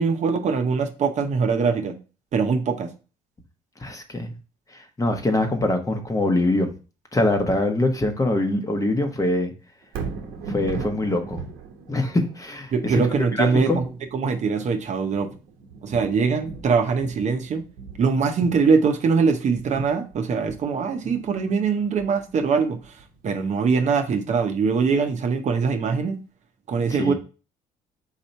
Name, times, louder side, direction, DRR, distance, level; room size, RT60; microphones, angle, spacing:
voice 1, 0.0-2.0 2.3-2.9 12.7-15.3 15.8-17.6 18.0-22.9 23.2-26.2 26.7-27.1, right 5 dB, 50° right, 6 dB, 0.8 m, -22 dB
voice 2, 3.8-4.3 5.0-6.7 7.1-9.5 10.5-11.4 11.9-12.7 13.4-13.8 27.0-27.1, left 2 dB, 20° left, 5 dB, 1.0 m, -23 dB
Thunder, 9.8-24.0 24.5-24.6, right 4 dB, 80° right, 0.9 m, -39 dB
4.1 x 2.8 x 4.4 m, 0.33 s
supercardioid pair, 80°, 15 cm